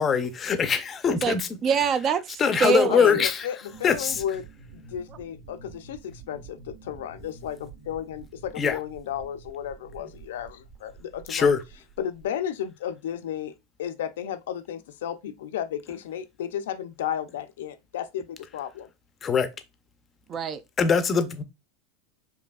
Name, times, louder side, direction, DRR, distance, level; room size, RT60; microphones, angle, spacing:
voice 1, 0.0-1.5 2.4-3.5 3.8-4.2 8.6-8.8 11.3-11.6 19.2-19.5 20.8-21.4, left 6 dB, 25° left, 0.5 m, -22 dB
voice 2, 1.6-3.2 20.3-20.6, right 6 dB, 30° right, 0.3 m, -24 dB
voice 3, 2.9-4.5 4.7-11.5 12.0-13.5 13.8-18.9, left 9 dB, 90° left, 0.4 m, -33 dB
sound 1, 3.7-12.3, right 5 dB, 50° right, 1.4 m, -48 dB
4.8 x 2.7 x 2.3 m
supercardioid pair, 140°, 0 cm